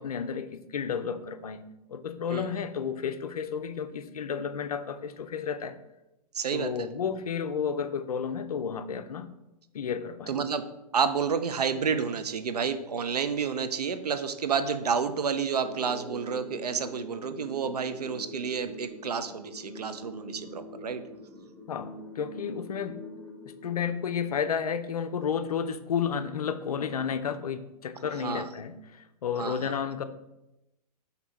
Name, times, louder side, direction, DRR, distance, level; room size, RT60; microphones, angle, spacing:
voice 1, 0.0-5.8 6.5-9.3 9.7-10.3 21.7-23.0 23.4-30.0, left 7 dB, 65° left, 10 dB, 0.4 m, -32 dB
voice 2, 6.3-6.9 10.3-10.6 10.9-21.0 28.2-28.4 29.4-29.7, right 6 dB, 70° right, 10 dB, 0.4 m, -30 dB
sound 1, 15.4-24.5, left 1 dB, 10° left, 0.5 m, -44 dB
4.4 x 2.7 x 4.2 m, 0.92 s
figure-of-eight pair, 110°, 21 cm